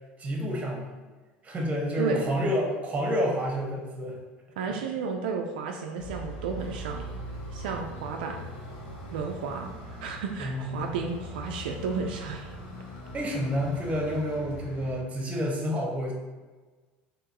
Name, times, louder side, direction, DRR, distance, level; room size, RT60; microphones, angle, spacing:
voice 1, 0.2-1.0 1.4-4.2 10.4-10.9 13.1-16.1, equal, 25° right, 0 dB, 1.2 m, -29 dB
voice 2, 2.0-2.3 4.6-7.2 7.5-8.5 9.1-12.5, right 5 dB, 85° right, 2 dB, 0.4 m, -33 dB
sound 1, 6.0-15.0, right 1 dB, 80° left, 0.9 m, -41 dB
3.7 x 3.0 x 2.9 m, 1.3 s
hypercardioid pair, 85°, 5 cm